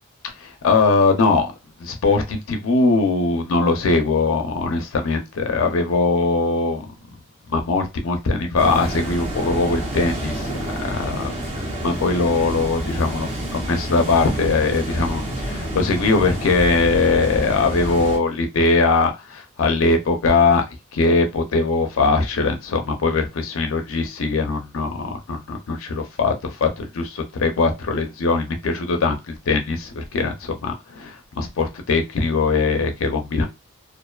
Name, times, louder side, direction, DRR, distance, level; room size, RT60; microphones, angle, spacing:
voice 1, 0.2-1.5 1.8-6.9 7.5-11.3 11.8-20.7 20.9-33.4, left 3 dB, 70° left, 5 dB, 0.5 m, -21 dB
sound 1, 8.6-18.2, right 1 dB, 25° right, 0.8 m, -29 dB
2.4 x 2.3 x 2.2 m, 0.23 s
head